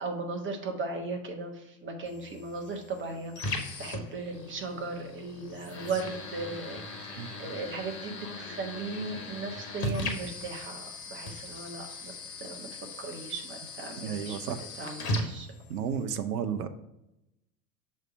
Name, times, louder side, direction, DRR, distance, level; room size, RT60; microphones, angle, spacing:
voice 1, 0.0-6.8 7.1-12.1 12.4-15.5, right 3 dB, 25° right, 3 dB, 1.2 m, -37 dB
sound 1, 2.0-16.0, left 2 dB, 70° left, 1.4 m, -39 dB
voice 2, 14.0-14.6 15.7-16.7, right 8 dB, 70° right, 10 dB, 0.7 m, -32 dB
6.6 x 3.3 x 4.8 m, 0.90 s
figure-of-eight pair, 85°, 49 cm